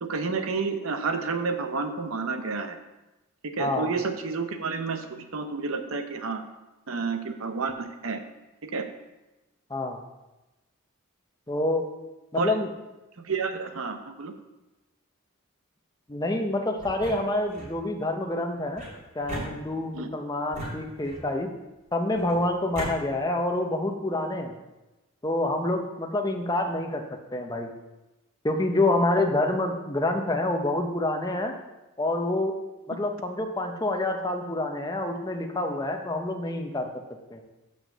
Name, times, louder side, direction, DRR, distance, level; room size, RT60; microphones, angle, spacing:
voice 1, 0.0-2.8 3.4-6.5 6.9-8.2 8.6-8.9 12.3-12.5 13.2-14.3 19.9-20.1 32.9-33.0, right 4 dB, 65° right, 7 dB, 0.7 m, -30 dB
voice 2, 3.6-3.9 9.7-10.0 11.5-11.9 12.3-12.7 16.1-18.8 19.1-21.5 21.9-24.5 25.2-27.0 27.3-27.7 28.4-31.5 32.0-32.6 32.9-36.9 37.3-37.4, left 2 dB, 15° left, 3 dB, 0.6 m, -27 dB
sound 1, 16.8-17.8 18.8-20.0 20.5-21.4 22.2-22.9, equal, 35° right, 2.6 m, -38 dB
5.8 x 5.0 x 6.6 m, 1.0 s
head